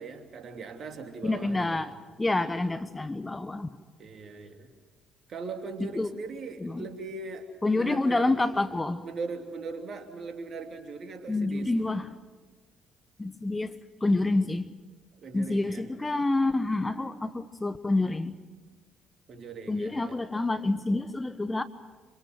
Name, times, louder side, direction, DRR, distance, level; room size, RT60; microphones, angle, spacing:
voice 1, 0.0-1.9 4.0-4.7 5.3-7.5 7.7-8.4 8.7-11.7 15.2-15.9 19.3-20.2, right 4 dB, 50° right, 3.0 m, -40 dB
voice 2, 1.2-1.9 2.2-3.7 5.8-6.1 6.6-6.8 7.6-9.0 11.3-12.1 13.2-13.7 14.0-14.7 15.3-18.3 19.7-21.6, left 2 dB, 20° left, 1.1 m, -27 dB
26.5 x 25.0 x 6.3 m
figure-of-eight pair, 45°, 0 cm